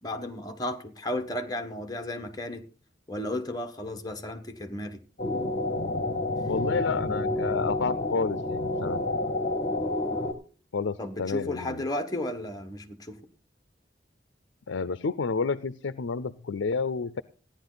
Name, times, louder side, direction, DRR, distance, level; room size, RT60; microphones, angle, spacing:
voice 1, 0.0-2.6 3.1-5.0 11.0-13.2, left 1 dB, 20° left, 1.3 m, -34 dB
sound 1, 5.2-10.3, left 2 dB, 40° left, 1.3 m, -29 dB
voice 2, 6.4-9.0 10.7-11.8 14.7-17.2, left 4 dB, 90° left, 0.5 m, -30 dB
15.0 x 10.5 x 4.0 m
head